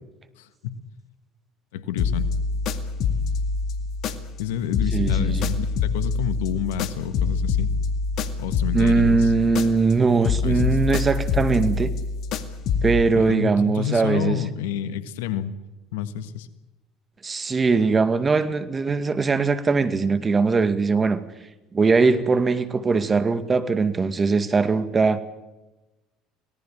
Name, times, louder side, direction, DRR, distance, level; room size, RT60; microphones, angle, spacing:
voice 1, 0.4-0.8 1.7-2.3 4.4-7.7 8.4-9.3 10.4-10.8 13.1-15.5 15.9-16.5, left 10 dB, 80° left, 1.6 m, -29 dB
sound 1, 2.0-4.5 4.7-10.0 10.2-13.0, left 4 dB, 60° left, 2.1 m, -25 dB
voice 2, 4.9-5.5 8.7-11.9 12.8-14.4 17.2-21.2 21.7-25.2, right 4 dB, 30° right, 2.1 m, -21 dB
25.5 x 18.5 x 7.5 m
hypercardioid pair, 70°, 0 cm